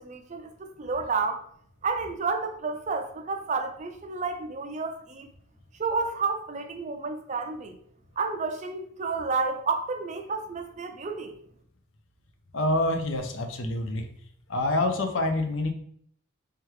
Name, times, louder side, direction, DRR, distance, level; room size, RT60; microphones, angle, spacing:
voice 1, 0.0-1.4 1.8-5.3 5.8-7.7 8.2-11.3, right 4 dB, 35° right, 0.4 m, -30 dB
voice 2, 12.5-14.1 14.5-15.7, left 2 dB, 65° left, 0.6 m, -26 dB
3.5 x 3.4 x 3.1 m
head